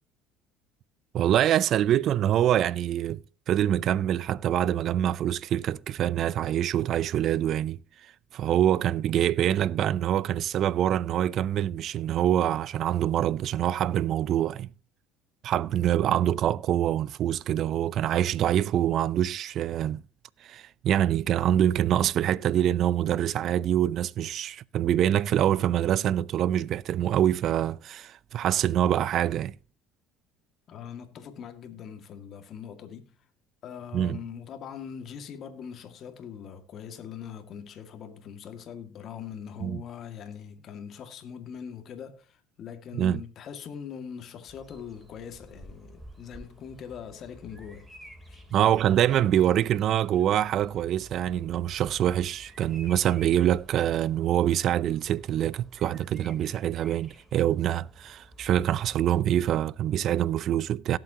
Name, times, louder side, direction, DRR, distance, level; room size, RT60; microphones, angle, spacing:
voice 1, 1.1-7.8 8.3-14.7 15.4-20.0 20.4-29.5 33.9-34.2 39.6-39.8 42.9-43.2 48.5-61.0, right 11 dB, 55° right, 0.5 m, -25 dB
voice 2, 30.7-33.1 33.6-47.9 48.3-48.4, left 8 dB, 50° left, 2.1 m, -42 dB
Bird vocalization bird call bird song, 44.5-59.6, right 1 dB, 10° right, 3.4 m, -51 dB
18.0 x 7.7 x 2.9 m
supercardioid pair, 95°, 0 cm